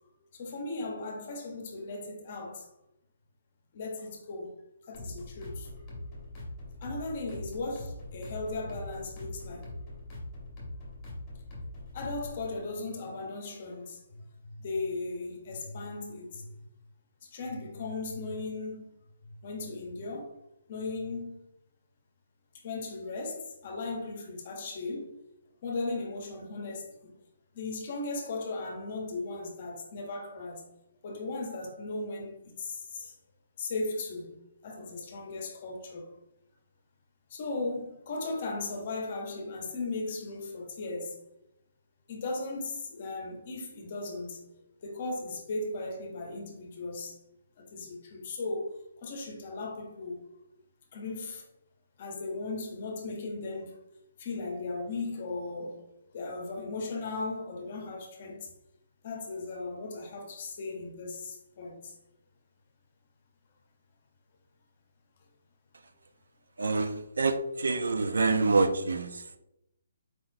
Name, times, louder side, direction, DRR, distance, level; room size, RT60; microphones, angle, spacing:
voice 1, 0.3-2.7 3.7-4.5 4.9-5.7 6.8-9.7 11.9-16.6 17.3-18.9 19.4-20.4 20.7-21.5 22.5-25.1 25.6-27.1 27.5-30.7 31.0-33.1 33.6-36.1 37.3-41.2 42.1-44.5 44.8-47.2 47.6-50.2 50.9-51.4 52.0-53.8 54.2-55.8 56.1-58.5 59.0-61.9 68.1-68.2, left 3 dB, 25° left, 0.8 m, -37 dB
sound 1, 4.9-12.5, left 1 dB, 10° left, 1.0 m, -42 dB
voice 2, 66.6-69.2, right 3 dB, 85° right, 0.5 m, -26 dB
4.5 x 4.1 x 2.6 m
hypercardioid pair, 180°, 0 cm